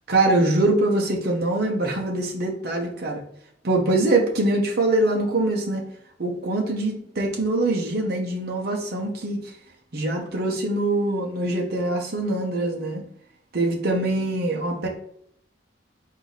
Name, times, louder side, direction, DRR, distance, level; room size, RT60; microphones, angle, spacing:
voice 1, 0.1-3.2 3.6-5.8 6.2-9.5 9.9-13.0 13.5-14.9, right 2 dB, 60° right, 0 dB, 0.8 m, -23 dB
4.7 x 2.7 x 3.9 m, 0.69 s
head